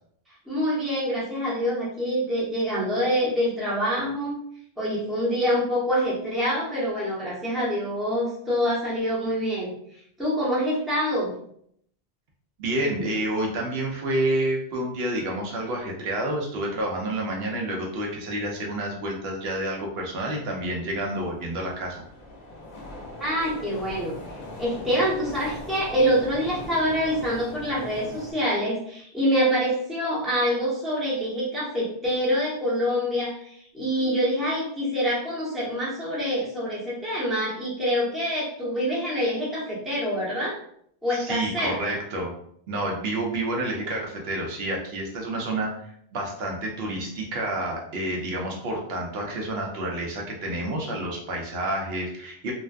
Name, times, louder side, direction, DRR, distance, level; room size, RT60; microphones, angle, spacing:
voice 1, 0.5-4.4 4.8-9.7 10.2-11.3 23.2-24.1 24.6-40.6 41.0-42.0, equal, ahead, -7 dB, 0.6 m, -26 dB
voice 2, 12.6-22.0 41.1-42.3 42.7-52.5, right 1 dB, 75° right, -1 dB, 0.8 m, -29 dB
sound 1, 20.3-28.3, left 2 dB, 55° left, 0.5 m, -40 dB
2.5 x 2.2 x 2.3 m, 0.67 s
omnidirectional pair, 1.1 m